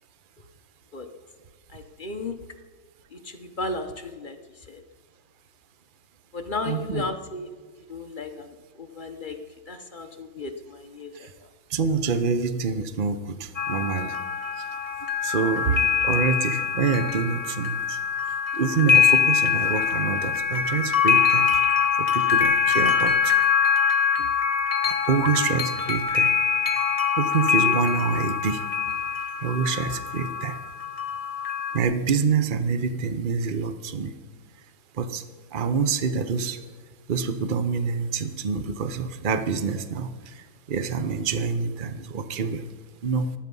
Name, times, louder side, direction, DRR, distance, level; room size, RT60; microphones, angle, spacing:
voice 1, 1.7-2.3 3.1-4.4 4.7-4.8 6.3-7.5 7.9-9.4 9.7-11.3, left 3 dB, 45° left, 5 dB, 0.6 m, -34 dB
voice 2, 6.7-7.1 11.7-13.2 13.7-14.1 15.2-18.0 18.6-21.4 22.1-23.1 25.1-26.3 27.2-28.6 29.4-30.6 31.7-34.1 35.0-35.2 35.5-36.6 37.1-40.1 40.7-42.6 43.0-43.3, right 5 dB, 65° right, 10 dB, 0.5 m, -26 dB
sound 1, 13.5-31.8, left 7 dB, 20° left, 1.0 m, -24 dB
19.5 x 13.0 x 5.5 m, 1.5 s
omnidirectional pair, 2.3 m